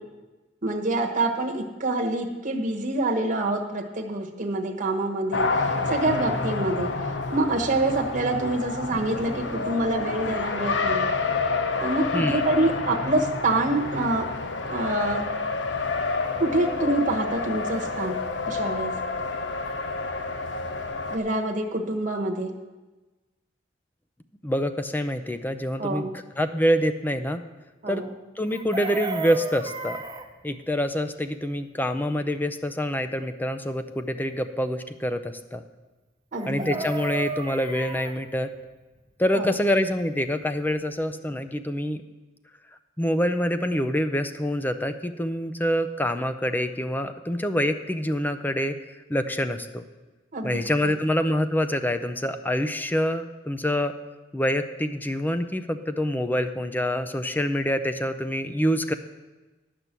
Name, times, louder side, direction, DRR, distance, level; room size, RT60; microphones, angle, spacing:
voice 1, 0.6-11.1 11.8-14.3 14.7-15.2 16.4-18.1 18.5-18.9 21.1-22.5 25.8-26.1 27.8-28.1 36.3-36.9 39.3-39.5 50.3-50.9, right 2 dB, 45° right, 2 dB, 1.1 m, -26 dB
Race car auto racing, 5.3-21.2, left 4 dB, 70° left, 0.8 m, -28 dB
voice 2, 24.4-26.1 26.4-27.4 27.9-28.0 28.4-30.0 30.4-35.6 36.5-38.5 39.2-42.0 43.0-48.8 49.1-49.8 50.4-53.9 54.3-58.9, equal, 10° left, 8 dB, 0.5 m, -26 dB
Chicken rooster, 28.5-30.3 36.4-38.2 40.4-40.5 40.8-41.0, right 3 dB, 20° right, 0.8 m, -33 dB
11.0 x 5.9 x 8.1 m, 1.2 s
head